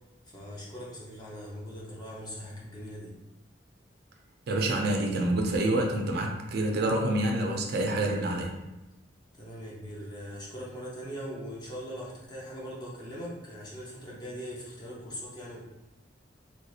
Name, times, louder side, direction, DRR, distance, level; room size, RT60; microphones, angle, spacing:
voice 1, 0.3-3.1 9.3-15.6, equal, 20° left, -5 dB, 0.5 m, -41 dB
voice 2, 4.5-8.5, right 1 dB, 55° right, 2 dB, 0.3 m, -27 dB
2.8 x 2.0 x 2.3 m, 1.0 s
head